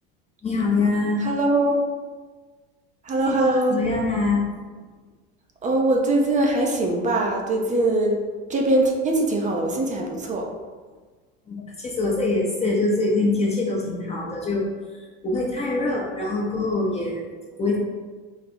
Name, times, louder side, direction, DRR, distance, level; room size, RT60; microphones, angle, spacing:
voice 1, 0.4-1.2 3.1-4.5 11.5-14.7 14.9-17.3 17.6-17.8, left 3 dB, 20° left, -3 dB, 0.7 m, -24 dB
voice 2, 1.2-1.8 3.1-3.8 5.6-8.2 8.5-10.5, right 2 dB, 25° right, 1 dB, 0.5 m, -22 dB
4.0 x 2.2 x 4.2 m, 1.4 s
supercardioid pair, 110°, 29 cm